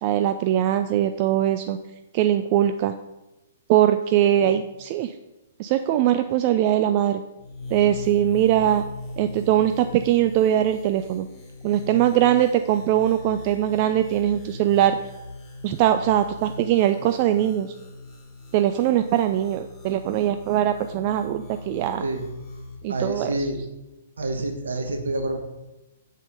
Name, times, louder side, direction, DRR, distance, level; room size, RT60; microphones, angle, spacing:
voice 1, 0.0-1.8 2.1-2.9 3.7-5.1 5.6-7.2 7.7-8.8 9.2-11.3 11.6-15.0 15.6-17.7 18.5-22.0 22.8-23.3, right 11 dB, 35° right, 9 dB, 0.4 m, -21 dB
sound 1, 7.4-22.8, left 2 dB, 20° left, 2.2 m, -39 dB
voice 2, 22.9-23.6 24.2-25.4, right 2 dB, 65° right, 5 dB, 1.3 m, -27 dB
7.3 x 6.4 x 5.0 m, 0.99 s
figure-of-eight pair, 115°, 0 cm